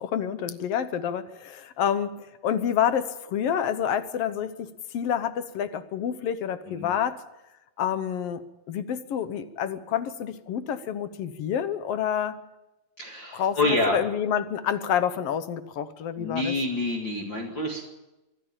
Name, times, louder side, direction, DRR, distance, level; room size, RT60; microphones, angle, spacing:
voice 1, 0.0-7.2 7.8-12.4 13.3-16.5, left 9 dB, 70° left, 12 dB, 1.5 m, -28 dB
voice 2, 13.0-14.0 16.2-17.8, left 2 dB, 40° left, 0 dB, 2.5 m, -27 dB
25.5 x 11.5 x 8.9 m, 0.99 s
omnidirectional pair, 3.9 m